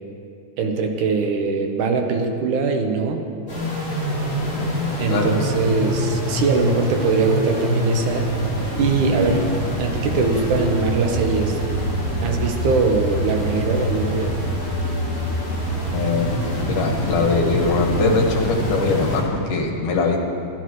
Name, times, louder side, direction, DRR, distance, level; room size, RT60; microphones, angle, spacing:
voice 1, 0.6-3.3 5.0-8.3 8.7-9.5 9.8-11.6 12.2-14.4, right 4 dB, 75° right, 4 dB, 2.5 m, -21 dB
sound 1, 3.5-19.2, equal, 30° left, 5.2 m, -25 dB
voice 2, 15.9-16.3 16.6-20.2, left 3 dB, 75° left, 0 dB, 3.2 m, -21 dB
23.0 x 14.5 x 3.2 m, 2.4 s
omnidirectional pair, 3.7 m